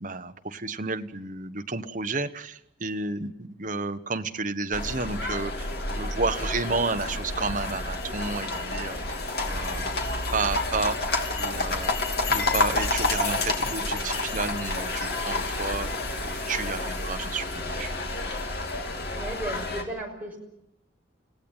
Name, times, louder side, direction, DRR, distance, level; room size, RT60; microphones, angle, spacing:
voice 1, 0.0-9.0 9.4-9.9 10.3-11.0 11.4-11.9 12.3-15.9 16.3-17.9, right 3 dB, 45° right, 8 dB, 1.2 m, -31 dB
sound 1, 4.7-19.8, left 2 dB, 55° left, 3.0 m, -29 dB
voice 2, 19.1-20.4, right 2 dB, 10° right, -1 dB, 6.0 m, -35 dB
30.0 x 17.0 x 9.0 m, 0.87 s
head